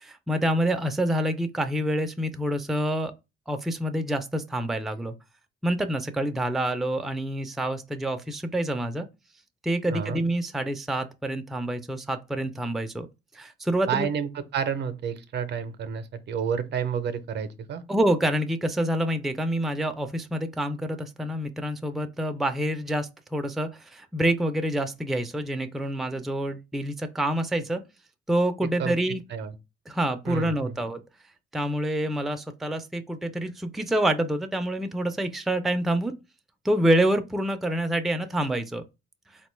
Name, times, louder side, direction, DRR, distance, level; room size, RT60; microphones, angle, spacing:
voice 1, 0.0-3.1 3.5-5.2 5.6-9.1 9.6-13.1 13.3-14.1 17.9-27.8 28.3-29.2 29.9-31.0 31.5-36.1 36.6-38.8, right 1 dB, ahead, 0.3 m, -27 dB
voice 2, 9.9-10.2 13.9-17.8 28.8-29.0 29.3-29.5 30.3-30.8, right 7 dB, 60° right, 0.5 m, -30 dB
3.6 x 2.2 x 3.1 m
cardioid pair, 90°, 20 cm